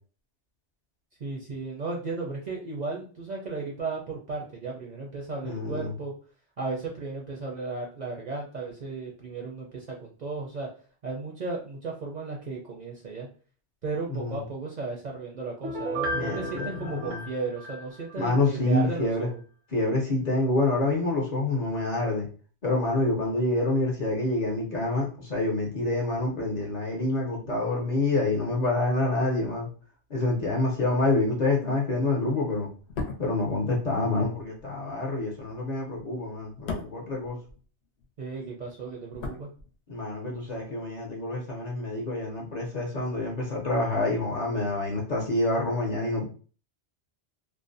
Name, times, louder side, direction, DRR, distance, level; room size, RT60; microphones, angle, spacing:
voice 1, 1.2-6.1 6.6-10.7 11.0-13.3 13.8-19.4 38.2-39.5, right 3 dB, 55° right, -2 dB, 0.5 m, -35 dB
voice 2, 5.4-5.9 14.1-14.4 16.1-17.2 18.2-19.3 19.7-22.3 22.6-29.7 30.1-32.7 33.2-37.4 39.9-46.3, left 2 dB, 45° left, -2 dB, 0.6 m, -27 dB
Piano, 15.6-18.3 18.7-18.8, right 1 dB, 85° right, 0.9 m, -34 dB
sound 1, 32.8-38.1 38.3-40.2 40.4-40.6, left 3 dB, 75° left, 0.8 m, -39 dB
2.5 x 2.0 x 2.5 m, 0.39 s
omnidirectional pair, 1.2 m